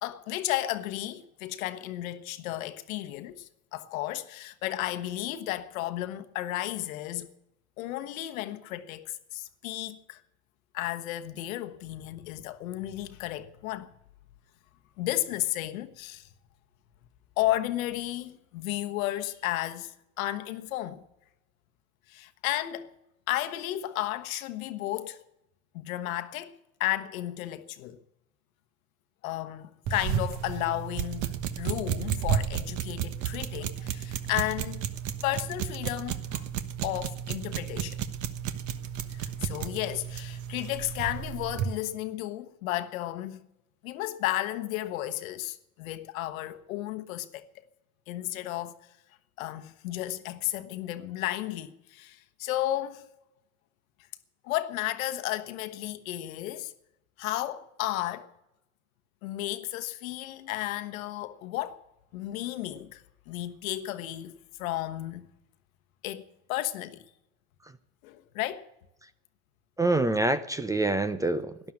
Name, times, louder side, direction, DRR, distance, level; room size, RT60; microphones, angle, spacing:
voice 1, 0.0-7.3 7.8-10.2 10.7-13.9 15.0-16.3 17.4-21.0 22.1-22.9 23.3-25.2 25.7-28.0 29.2-34.9 35.2-36.5 36.8-38.0 39.1-43.4 43.8-47.6 48.1-48.7 49.4-53.1 54.4-56.7 57.2-58.3 59.2-61.8 62.1-65.3 66.0-66.2 66.5-67.0 68.0-68.7, left 15 dB, 75° left, 1.3 m, -33 dB
sound 1, 29.9-41.8, right 9 dB, 45° right, 1.2 m, -33 dB
voice 2, 69.8-71.7, right 2 dB, 10° right, 0.5 m, -26 dB
12.5 x 11.0 x 8.7 m
supercardioid pair, 115°, 41 cm